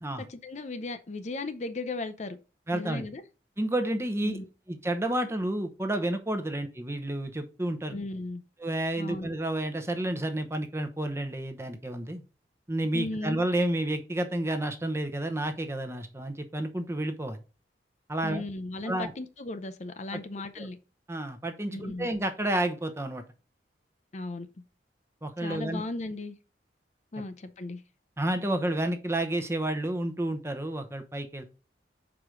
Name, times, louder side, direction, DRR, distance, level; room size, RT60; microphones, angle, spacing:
voice 1, 0.3-2.4 2.7-3.2 4.2-4.5 7.9-8.4 9.0-9.3 12.9-13.4 18.2-20.8 21.7-22.1 24.1-24.5 25.4-26.4 27.1-27.8, left 2 dB, 40° left, 0.6 m, -36 dB
voice 2, 2.7-3.0 3.6-4.4 4.7-7.9 8.6-12.2 12.7-17.4 18.1-18.4 18.8-19.1 20.1-20.2 20.6-20.7 21.1-23.2 25.2-25.8 28.2-31.4, right 1 dB, 15° right, 0.9 m, -30 dB
6.0 x 4.9 x 5.1 m
head